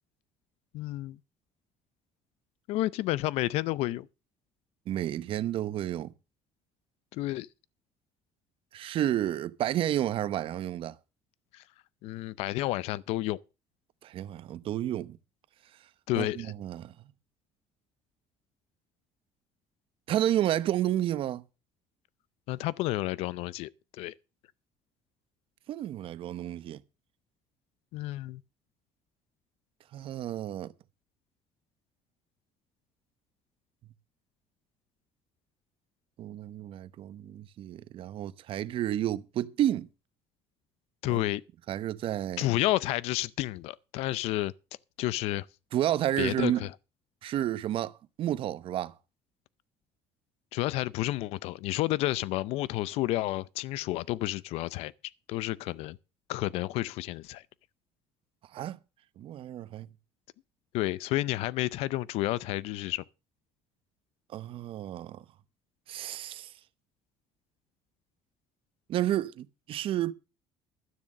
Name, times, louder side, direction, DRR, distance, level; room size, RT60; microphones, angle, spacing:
voice 1, 0.7-1.2 2.7-4.1 7.1-7.5 11.5-11.6 12.0-13.4 16.1-16.5 22.5-24.1 27.9-28.4 41.0-41.4 42.4-44.5 45.0-45.5 46.2-46.7 50.5-54.9 55.3-56.0 56.3-57.4 60.7-63.0, left 17 dB, 80° left, 0.5 m, -30 dB
voice 2, 4.9-6.1 8.7-11.0 14.0-15.2 16.2-16.9 20.1-21.4 25.7-26.8 29.9-30.7 36.2-39.9 41.1-41.2 41.7-42.5 45.7-46.7 47.2-48.9 58.5-58.8 59.2-59.9 64.3-65.2 65.9-66.5 68.9-70.1, right 12 dB, 60° right, 0.8 m, -31 dB
12.5 x 7.1 x 6.5 m
cardioid pair, 105°, 10 cm